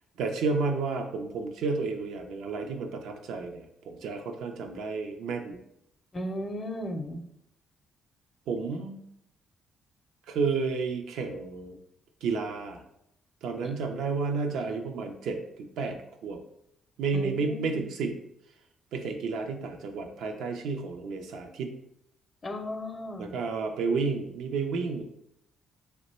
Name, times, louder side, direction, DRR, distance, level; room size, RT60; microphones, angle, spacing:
voice 1, 0.2-5.6 8.5-9.0 10.3-11.8 12.2-12.8 13.4-16.0 16.2-16.4 17.0-18.1 18.9-21.7 23.2-25.0, right 4 dB, 85° right, 4 dB, 0.5 m, -31 dB
voice 2, 6.1-7.2 17.1-17.9 22.4-23.3, equal, 35° left, 6 dB, 0.5 m, -35 dB
2.9 x 2.1 x 4.1 m, 0.78 s
cardioid pair, 90°, 0 cm